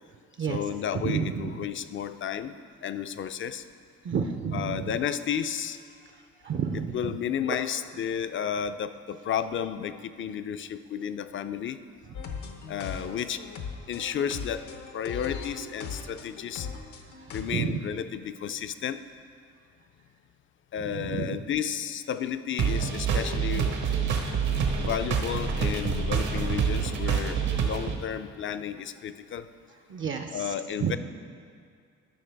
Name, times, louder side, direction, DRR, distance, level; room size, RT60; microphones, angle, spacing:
voice 1, 0.5-2.5 2.8-3.6 4.5-5.8 6.7-11.8 12.7-13.4 13.9-14.6 14.9-16.7 17.3-19.0 20.7-23.7 24.5-29.5 30.3-31.0, left 9 dB, 40° left, 11 dB, 0.4 m, -32 dB
voice 2, 1.0-1.5 4.1-4.8 6.4-6.9 17.5-17.7 21.0-21.4 29.9-30.3 30.8-31.0, right 7 dB, 40° right, 5 dB, 0.5 m, -29 dB
sound 1, 12.1-17.4, left 5 dB, 75° left, 0.8 m, -39 dB
sound 2, 22.6-27.9, right 6 dB, 70° right, 1.1 m, -27 dB
12.5 x 5.6 x 3.4 m, 2.2 s
cardioid pair, 90°, 30 cm